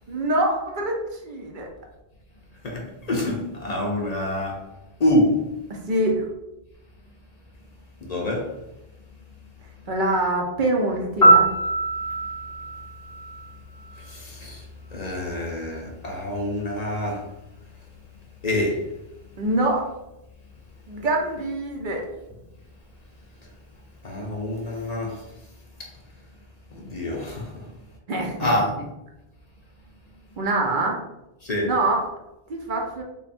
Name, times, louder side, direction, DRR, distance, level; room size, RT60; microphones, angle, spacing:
voice 1, 0.1-1.7 5.9-6.3 9.9-11.5 19.4-19.8 20.9-22.1 28.1-28.6 30.4-31.0 31.6-32.0 32.5-33.0, right 2 dB, 55° right, 0.8 m, -24 dB
voice 2, 2.6-4.6 5.0-5.4 8.0-8.5 14.0-14.7 14.9-17.3 18.4-18.8 24.0-25.3 25.8-25.9 26.7-27.7 28.4-28.7 31.4-31.7, left 1 dB, 45° left, 0.6 m, -26 dB
Piano, 11.2-14.1 22.3-22.5, right 2 dB, 5° left, 0.9 m, -22 dB
3.4 x 2.2 x 4.1 m
omnidirectional pair, 1.0 m